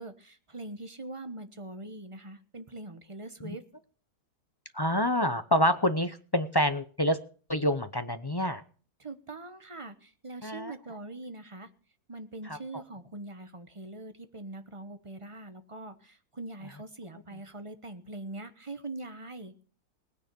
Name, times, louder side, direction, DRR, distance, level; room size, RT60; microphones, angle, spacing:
voice 1, 0.0-3.6 9.0-11.7 12.1-19.5, right 2 dB, 20° right, 10 dB, 1.1 m, -42 dB
voice 2, 4.7-7.2 7.5-8.6 10.4-10.7 12.4-12.6, equal, 30° left, 10 dB, 0.4 m, -27 dB
18.5 x 9.7 x 6.9 m, 0.42 s
omnidirectional pair, 1.7 m